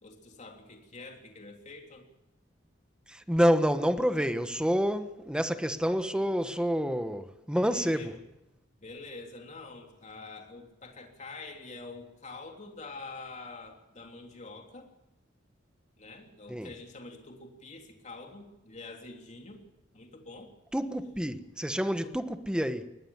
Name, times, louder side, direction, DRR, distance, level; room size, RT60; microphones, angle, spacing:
voice 1, 0.0-2.1 7.7-8.2 8.8-14.9 16.0-19.6 19.9-20.5 22.0-22.1, left 3 dB, 40° left, 3.3 m, -46 dB
voice 2, 3.1-8.1 16.5-16.7 20.7-22.9, equal, 5° right, 1.2 m, -28 dB
23.0 x 19.5 x 7.3 m
head